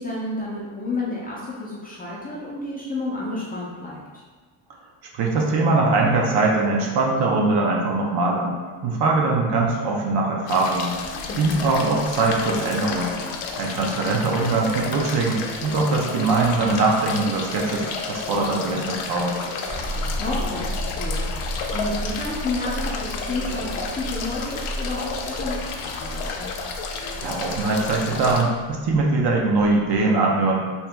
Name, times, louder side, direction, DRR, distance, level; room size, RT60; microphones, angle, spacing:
voice 1, 0.0-4.0 11.3-11.6 20.2-26.5, left 2 dB, 20° left, -6 dB, 0.4 m, -31 dB
voice 2, 5.1-8.6 8.8-10.9 11.4-13.1 13.6-19.4 27.2-30.7, right 3 dB, 55° right, -1 dB, 0.7 m, -22 dB
sound 1, 10.5-28.4, left 4 dB, 80° left, 0.6 m, -32 dB
sound 2, 19.7-30.0, equal, 80° right, 0.9 m, -33 dB
2.9 x 2.8 x 3.4 m, 1.5 s
cardioid pair, 130°, 49 cm